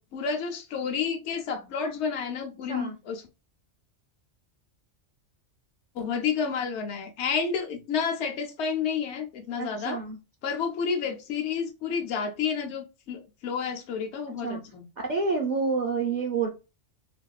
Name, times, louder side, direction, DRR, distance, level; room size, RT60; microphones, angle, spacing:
voice 1, 0.0-3.2 6.0-10.0 10.4-14.9, left 6 dB, 70° left, 0.9 m, -30 dB
voice 2, 9.6-10.2 14.3-14.6 15.1-16.5, right 4 dB, 50° right, 0.6 m, -28 dB
3.5 x 2.3 x 2.3 m
omnidirectional pair, 1.2 m